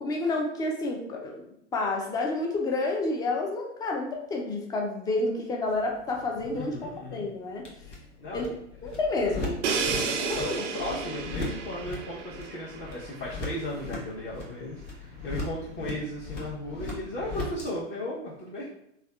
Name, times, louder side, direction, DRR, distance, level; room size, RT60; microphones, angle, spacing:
voice 1, 0.0-1.4 1.7-7.7 8.3-8.5 8.8-9.6 10.2-10.6, left 2 dB, 10° left, 1 dB, 0.3 m, -29 dB
sound 1, 5.7-17.7, left 2 dB, 90° left, 0.9 m, -39 dB
voice 2, 6.5-7.3 8.2-8.4 10.0-18.7, left 1 dB, 30° left, -7 dB, 0.8 m, -36 dB
Crash cymbal, 9.6-13.4, right 5 dB, 85° right, 0.5 m, -32 dB
3.4 x 2.3 x 2.2 m, 0.75 s
hypercardioid pair, 100°, 36 cm